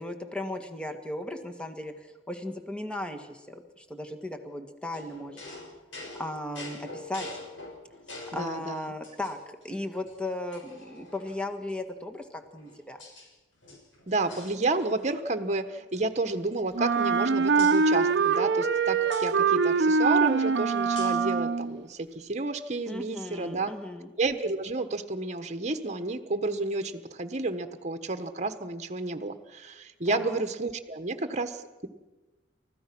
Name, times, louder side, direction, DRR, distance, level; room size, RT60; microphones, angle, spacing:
voice 1, 0.0-5.5 6.2-7.3 8.3-13.0 22.9-24.1 30.1-30.4, left 1 dB, 5° left, 5 dB, 1.7 m, -36 dB
sound 1, 4.9-8.5 9.0-9.7 10.1-10.2 10.5-11.6 12.3-13.3 13.6-15.1 15.4-15.6 15.9-17.2 17.6-17.8 19.1-19.3 21.0-21.3, left 2 dB, 80° left, 6.2 m, -45 dB
voice 2, 8.3-8.8 14.1-23.7 24.2-31.9, right 2 dB, 40° right, 8 dB, 1.3 m, -31 dB
Wind instrument woodwind instrument, 16.7-21.8, right 5 dB, 65° right, 0.9 m, -24 dB
30.0 x 14.5 x 6.1 m, 1.1 s
head